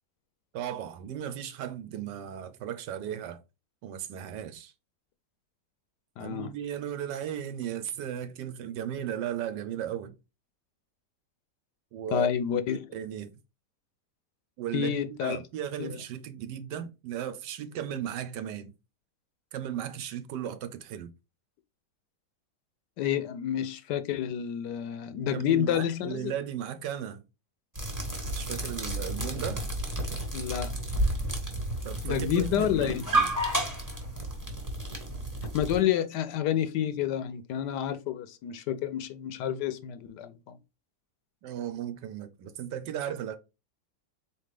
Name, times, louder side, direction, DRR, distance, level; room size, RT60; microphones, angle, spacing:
voice 1, 0.5-3.4 3.8-4.7 6.2-10.2 11.9-12.3 12.9-13.3 14.6-18.7 19.5-21.1 25.3-27.2 28.3-29.7 31.8-33.3 41.4-43.4, right 10 dB, 85° right, 1.3 m, -36 dB
voice 2, 6.2-6.5 12.1-12.9 14.7-15.4 15.8-16.0 23.0-26.3 30.3-30.7 32.0-33.0 35.5-40.6, left 10 dB, 75° left, 1.1 m, -29 dB
sound 1, 27.8-35.8, right 1 dB, 10° right, 1.1 m, -31 dB
4.2 x 3.3 x 3.2 m
omnidirectional pair, 1.9 m